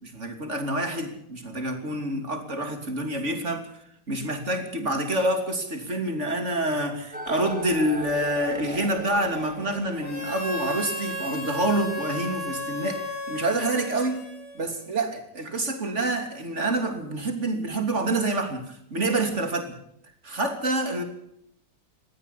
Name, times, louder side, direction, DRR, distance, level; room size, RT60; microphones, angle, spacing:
voice 1, 0.0-3.7 4.1-14.2 14.5-19.8 20.2-21.0, right 1 dB, 45° right, 6 dB, 3.4 m, -27 dB
sound 1, 7.1-12.2, equal, 5° right, 2.8 m, -39 dB
Harmonica, 10.0-14.9, left 1 dB, 35° left, 6.5 m, -34 dB
20.5 x 15.5 x 8.5 m, 0.73 s
omnidirectional pair, 1.7 m